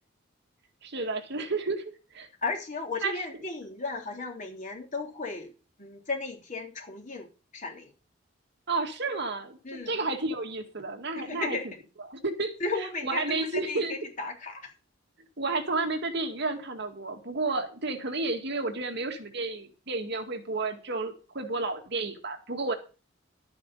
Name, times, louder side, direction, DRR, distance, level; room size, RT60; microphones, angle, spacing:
voice 1, 0.8-2.3 3.0-3.2 8.7-11.6 12.1-14.0 15.4-22.7, right 3 dB, 60° right, 5 dB, 2.0 m, -31 dB
voice 2, 2.4-5.5 5.8-7.3 7.5-7.9 9.6-10.0 11.1-11.7 12.6-14.7, left 3 dB, 40° left, 2 dB, 3.4 m, -35 dB
12.0 x 9.4 x 5.5 m, 0.34 s
head